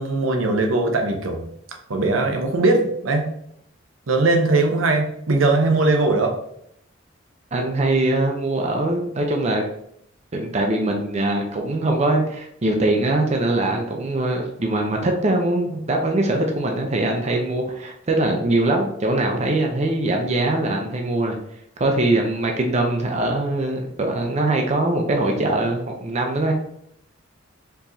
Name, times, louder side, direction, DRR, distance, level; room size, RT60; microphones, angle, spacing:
voice 1, 0.0-1.5 1.9-3.3 4.1-6.3, right 2 dB, 90° right, 3 dB, 0.7 m, -20 dB
voice 2, 7.5-9.6 10.3-21.4 21.8-26.5, right 2 dB, 35° right, 2 dB, 0.5 m, -22 dB
4.5 x 3.0 x 2.6 m, 0.72 s
head